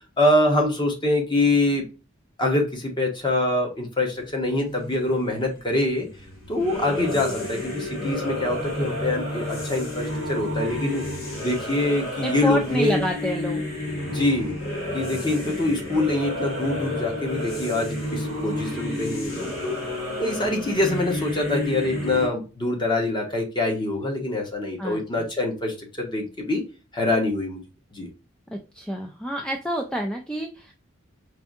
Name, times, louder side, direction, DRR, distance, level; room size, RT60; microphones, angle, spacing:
voice 1, 0.2-1.9 2.4-6.1 6.5-11.0 11.4-13.0 14.0-14.6 14.9-19.8 20.2-26.6 26.9-27.6 27.9-28.1, left 2 dB, 25° left, 1 dB, 1.0 m, -24 dB
sound 1, 4.1-22.3, left 1 dB, 80° left, 1.5 m, -31 dB
voice 2, 12.2-13.6 24.8-25.3 28.5-30.7, equal, 5° left, 2 dB, 0.4 m, -28 dB
4.5 x 2.6 x 2.4 m, 0.32 s
head